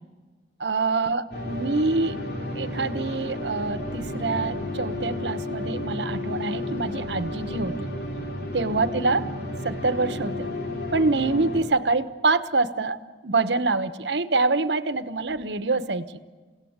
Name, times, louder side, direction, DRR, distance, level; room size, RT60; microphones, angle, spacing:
voice 1, 0.6-2.2 2.5-7.9 8.5-9.3 9.6-10.5 10.9-16.1, right 3 dB, 70° right, 13 dB, 1.1 m, -25 dB
sound 1, 1.3-11.6, left 1 dB, 65° left, 3.2 m, -32 dB
28.5 x 17.5 x 8.0 m, 1.4 s
head